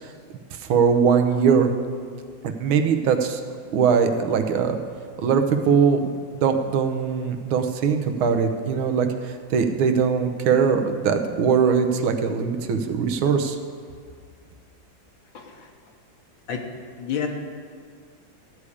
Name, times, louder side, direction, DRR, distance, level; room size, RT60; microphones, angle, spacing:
voice 1, 0.6-1.7 2.4-3.4 3.7-4.8 5.2-13.6, right 6 dB, 90° right, 6 dB, 1.7 m, -21 dB
voice 2, 15.3-15.5 16.5-16.6 17.0-17.3, left 7 dB, 75° left, 2 dB, 1.8 m, -28 dB
14.5 x 4.9 x 8.5 m, 2.1 s
omnidirectional pair, 2.2 m